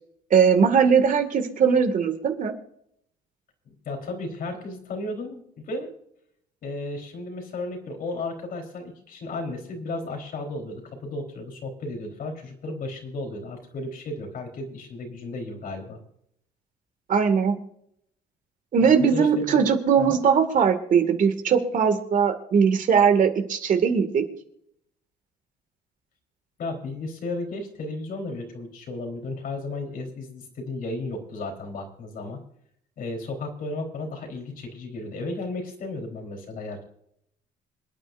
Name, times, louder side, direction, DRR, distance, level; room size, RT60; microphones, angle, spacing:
voice 1, 0.3-2.5 17.1-17.6 18.7-24.2, right 6 dB, 50° right, 6 dB, 2.1 m, -20 dB
voice 2, 3.7-5.9 6.6-16.0 18.8-19.7 20.0-20.2 26.6-32.4 33.0-36.8, left 2 dB, 60° left, 3 dB, 4.0 m, -34 dB
27.0 x 9.3 x 2.6 m, 0.73 s
cardioid pair, 110°, 17 cm